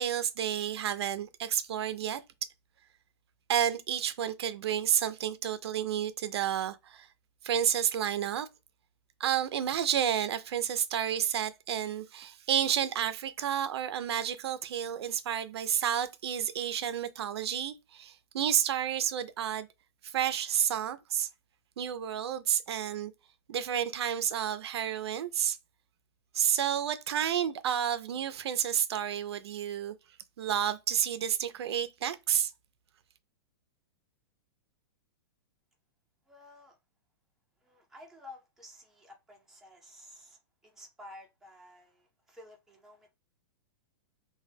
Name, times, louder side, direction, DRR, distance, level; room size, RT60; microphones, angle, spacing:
voice 1, 0.0-2.2 3.5-7.1 7.4-8.5 9.2-19.7 20.0-21.3 21.8-23.1 23.5-25.6 26.3-29.9 30.4-32.5, right 9 dB, 85° right, 0.4 m, -30 dB
voice 2, 36.3-36.8 37.6-43.1, left 1 dB, 5° right, 0.6 m, -52 dB
2.2 x 2.0 x 3.3 m
hypercardioid pair, 150°, 13 cm